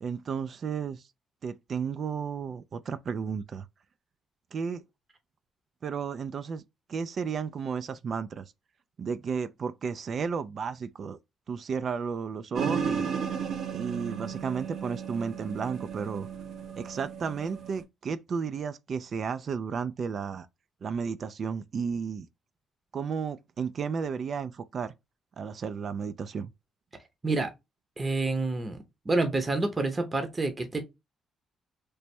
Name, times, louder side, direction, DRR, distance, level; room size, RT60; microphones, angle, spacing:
voice 1, 0.0-1.0 1.4-3.7 4.5-4.8 5.8-6.6 6.9-8.4 9.0-11.2 11.5-13.1 13.7-16.3 16.8-20.5 20.8-22.3 22.9-24.9 25.4-26.5, right 6 dB, 50° right, 0.3 m, -33 dB
sound 1, 12.5-17.8, right 7 dB, 70° right, 0.7 m, -34 dB
voice 2, 28.0-28.8 29.1-30.8, right 2 dB, 25° right, 0.7 m, -28 dB
3.3 x 2.1 x 4.2 m
cardioid pair, 90°, 0 cm